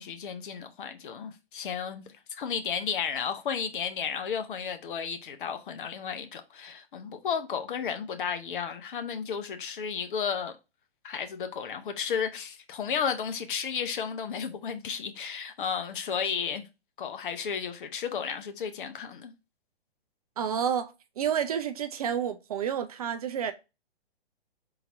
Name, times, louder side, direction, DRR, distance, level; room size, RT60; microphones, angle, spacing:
voice 1, 0.0-2.0 2.3-10.5 11.0-16.7 17.0-19.3, left 7 dB, 55° left, 0.8 m, -33 dB
voice 2, 20.4-23.5, right 8 dB, 40° right, 0.4 m, -30 dB
3.8 x 2.7 x 4.5 m
hypercardioid pair, 135°, 31 cm